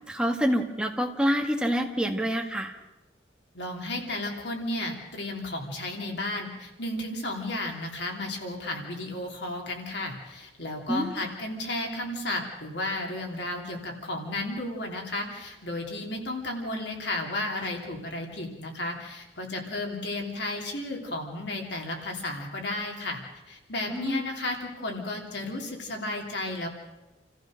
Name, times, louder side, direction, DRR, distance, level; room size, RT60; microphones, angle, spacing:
voice 1, 0.1-2.7 10.9-11.2 23.9-24.2, equal, 5° right, 1 dB, 1.8 m, -27 dB
voice 2, 3.5-23.2 23.5-26.7, left 2 dB, 70° left, 1 dB, 3.2 m, -33 dB
28.5 x 14.5 x 6.5 m, 1.1 s
head